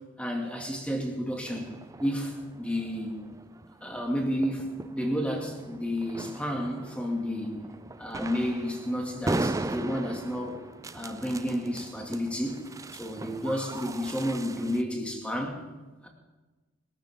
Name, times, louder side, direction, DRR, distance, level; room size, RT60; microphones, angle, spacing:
voice 1, 0.2-1.7 2.0-3.3 3.8-7.6 8.0-10.6 10.9-12.6 12.9-15.6 16.0-16.1, equal, 5° left, 0 dB, 2.4 m, -31 dB
sound 1, 1.5-14.8, right 2 dB, 15° right, 0.4 m, -38 dB
21.5 x 14.5 x 3.8 m, 1.2 s
head